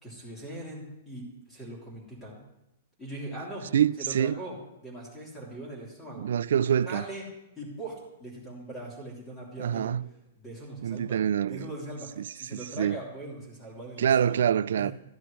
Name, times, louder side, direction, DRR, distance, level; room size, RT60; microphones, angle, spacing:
voice 1, 0.0-2.4 3.0-3.7 4.0-6.3 6.9-7.2 7.6-9.9 10.4-11.2 11.5-14.4 14.8-14.9, right 1 dB, 10° left, 2.9 m, -41 dB
voice 2, 3.7-4.4 6.1-7.0 9.6-10.0 10.8-11.7 12.2-13.0 14.0-14.9, right 9 dB, 75° right, 0.3 m, -26 dB
13.5 x 10.5 x 3.2 m
hypercardioid pair, 170°, 0 cm